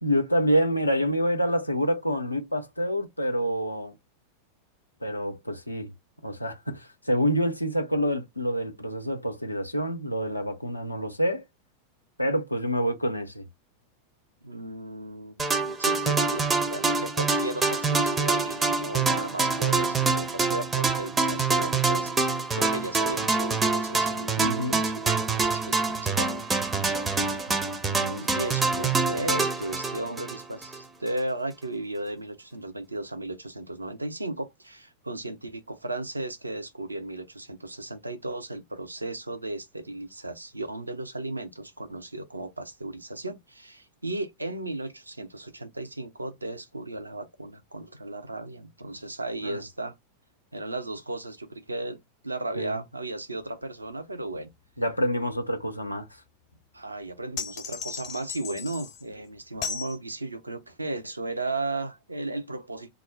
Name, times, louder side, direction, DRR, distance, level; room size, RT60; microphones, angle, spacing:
voice 1, 0.0-3.9 5.0-5.9 6.2-11.4 12.2-13.4 24.4-24.8 27.9-28.3 49.4-49.6 52.6-52.8 54.8-56.1, equal, 85° left, 0.4 m, -27 dB
voice 2, 14.4-26.3 28.2-49.9 50.5-54.5 56.7-62.9, right 2 dB, 80° right, 0.4 m, -35 dB
sound 1, 15.4-30.8, right 4 dB, 15° right, 0.4 m, -26 dB
sound 2, 57.4-59.0 59.6-60.0, left 6 dB, 40° left, 0.7 m, -35 dB
2.3 x 2.0 x 3.1 m
figure-of-eight pair, 90°, 0 cm